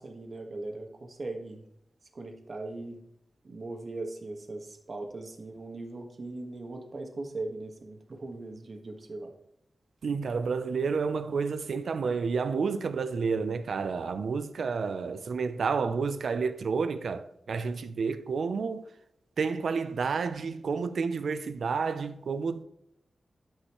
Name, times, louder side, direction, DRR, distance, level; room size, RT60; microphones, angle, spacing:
voice 1, 0.0-1.6 2.1-3.0 3.4-9.3, right 2 dB, 50° right, 1.5 m, -39 dB
voice 2, 10.0-18.8 19.4-22.6, right 5 dB, 90° right, 0.6 m, -30 dB
11.5 x 5.5 x 3.1 m
wide cardioid pair, 105°, 0 cm